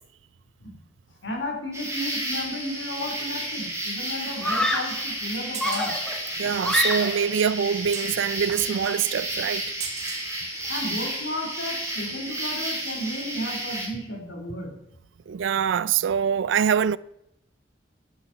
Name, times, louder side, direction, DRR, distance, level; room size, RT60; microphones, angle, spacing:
voice 1, 1.2-5.9 10.6-14.7, left 1 dB, 70° left, 3.1 m, -33 dB
sound 1, 1.7-13.9, right 1 dB, 15° right, 2.7 m, -32 dB
Screaming, 2.9-3.3 4.4-5.1 5.6-7.3, left 1 dB, 5° left, 1.1 m, -27 dB
sound 2, 3.1-11.3 11.8-12.6 13.9-14.0, right 6 dB, 40° right, 1.6 m, -43 dB
voice 2, 6.4-9.6 15.3-17.0, right 7 dB, 75° right, 0.4 m, -24 dB
10.0 x 8.0 x 5.6 m
head